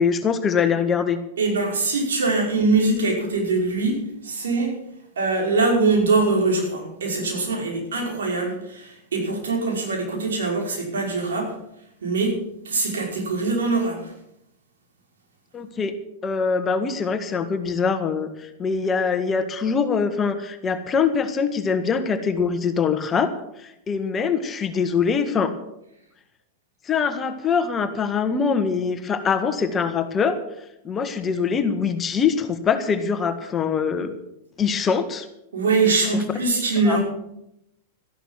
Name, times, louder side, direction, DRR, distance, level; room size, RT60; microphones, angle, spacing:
voice 1, 0.0-1.2 15.5-16.0 16.2-23.3 23.6-25.5 26.9-30.4 30.8-34.1 34.6-35.3 35.8-36.2 36.9-37.0, left 6 dB, 25° left, 9 dB, 1.6 m, -23 dB
voice 2, 1.4-4.7 5.2-11.6 12.0-12.4 12.6-14.1 35.5-37.0, right 3 dB, 75° right, 0 dB, 5.6 m, -23 dB
13.5 x 11.0 x 7.4 m, 0.83 s
hypercardioid pair, 100°, 0 cm